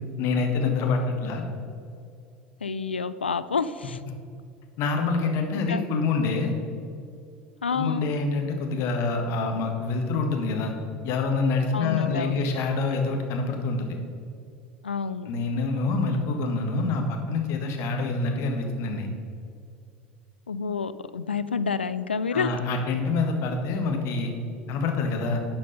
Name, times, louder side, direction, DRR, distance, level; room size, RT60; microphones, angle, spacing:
voice 1, 0.2-1.4 4.8-6.5 7.7-10.7 11.0-14.0 15.3-19.1 22.3-24.3 24.7-25.4, left 3 dB, 55° left, 3 dB, 1.7 m, -26 dB
voice 2, 2.6-4.0 5.5-5.8 7.6-8.1 11.7-12.5 14.8-15.3 20.5-22.5, left 5 dB, 90° left, 14 dB, 0.3 m, -29 dB
11.0 x 5.2 x 5.4 m, 2.4 s
figure-of-eight pair, 70°, 6 cm